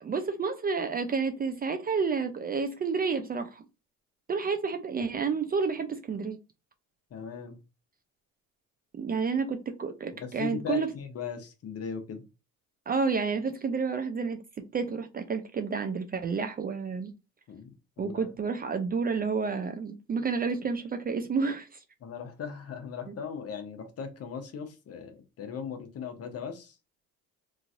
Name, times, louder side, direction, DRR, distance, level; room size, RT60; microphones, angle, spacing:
voice 1, 0.0-3.6 4.3-6.4 8.9-10.9 12.9-14.4 14.7-17.1 18.0-21.8, right 5 dB, 30° right, 0.4 m, -30 dB
voice 2, 7.1-7.6 10.1-12.2 17.5-18.3 22.0-26.8, left 7 dB, 45° left, 0.8 m, -38 dB
3.0 x 2.5 x 2.5 m
supercardioid pair, 80°, 34 cm